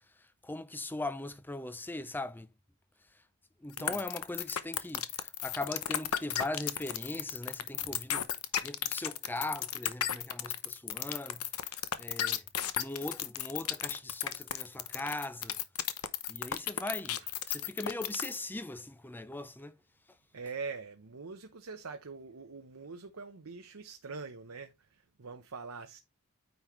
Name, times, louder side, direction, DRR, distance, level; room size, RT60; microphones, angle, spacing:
voice 1, 0.4-2.5 3.6-8.3 8.6-12.4 12.8-15.6 16.3-19.8, left 2 dB, 10° left, 0.5 m, -40 dB
sound 1, 3.8-18.4, left 10 dB, 75° left, 0.9 m, -34 dB
voice 2, 20.3-26.0, right 4 dB, 70° right, 0.8 m, -44 dB
9.4 x 5.3 x 3.2 m
head